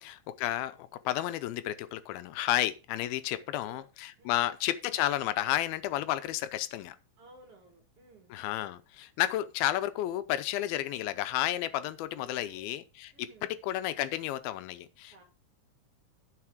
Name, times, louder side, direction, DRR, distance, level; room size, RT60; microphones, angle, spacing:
voice 1, 0.0-7.0 8.3-15.2, left 14 dB, 85° left, 2.5 m, -32 dB
voice 2, 3.4-3.9 4.2-4.5 7.2-8.3 11.7-12.8 13.1-13.5 15.1-15.2, right 3 dB, 45° right, 2.2 m, -56 dB
9.6 x 6.4 x 4.7 m
omnidirectional pair, 4.3 m